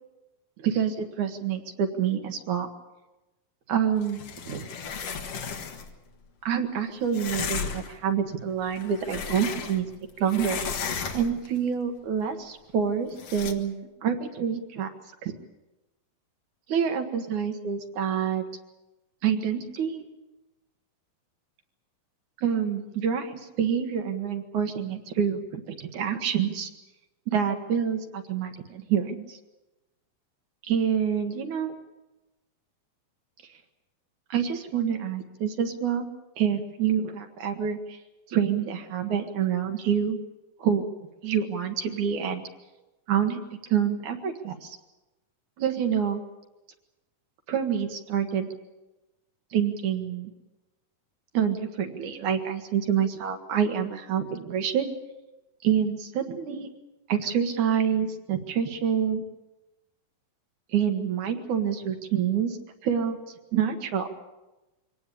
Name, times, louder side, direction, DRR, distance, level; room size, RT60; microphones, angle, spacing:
voice 1, 0.6-2.7 3.7-4.6 6.4-9.9 10.2-10.6 11.1-14.9 15.2-15.3 16.7-18.4 19.2-20.0 22.4-26.7 27.3-29.4 30.6-31.7 34.3-36.1 36.4-38.0 38.3-40.2 40.6-40.9 41.2-42.4 43.1-43.4 43.7-44.8 45.6-46.2 47.5-48.5 49.5-50.3 51.3-54.9 55.6-56.7 57.1-59.2 60.7-62.6 62.8-63.2 63.5-64.1, right 8 dB, 65° right, 5 dB, 2.7 m, -27 dB
sound 1, 4.0-5.9 7.1-8.0 8.6-10.0 10.2-11.5 13.2-13.5, left 6 dB, 55° left, 2.3 m, -34 dB
24.0 x 18.0 x 8.6 m, 1.0 s
omnidirectional pair, 3.9 m